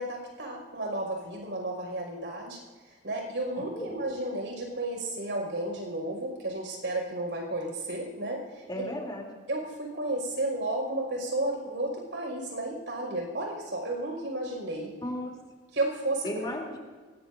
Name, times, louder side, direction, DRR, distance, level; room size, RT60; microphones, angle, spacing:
voice 1, 0.0-8.8 9.5-14.9 15.7-16.5, right 1 dB, 85° right, 1 dB, 5.8 m, -33 dB
voice 2, 8.7-9.3 15.0-15.4 16.2-16.8, equal, 25° left, 0 dB, 3.3 m, -35 dB
23.5 x 19.0 x 2.7 m, 1.4 s
head